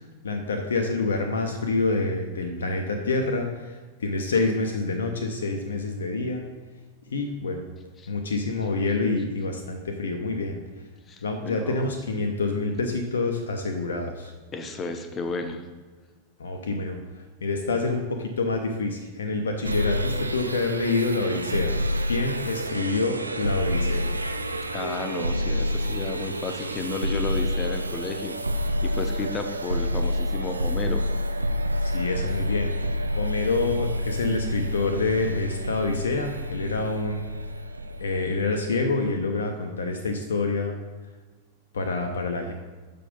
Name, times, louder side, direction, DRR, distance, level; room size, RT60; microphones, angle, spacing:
voice 1, 0.2-6.4 7.1-7.6 8.1-10.6 11.2-14.3 16.4-17.0 17.4-21.8 22.1-24.1 31.8-32.7 33.1-37.2 38.0-40.7 41.7-42.5, left 3 dB, 70° left, 4 dB, 0.7 m, -27 dB
voice 2, 11.1-11.9 14.5-15.6 24.7-28.4 28.8-31.1, left 3 dB, 25° left, 7 dB, 0.8 m, -32 dB
sound 1, 19.6-38.9, equal, 80° right, 0.4 m, -28 dB
6.7 x 5.2 x 5.2 m, 1.3 s
figure-of-eight pair, 90°, 0 cm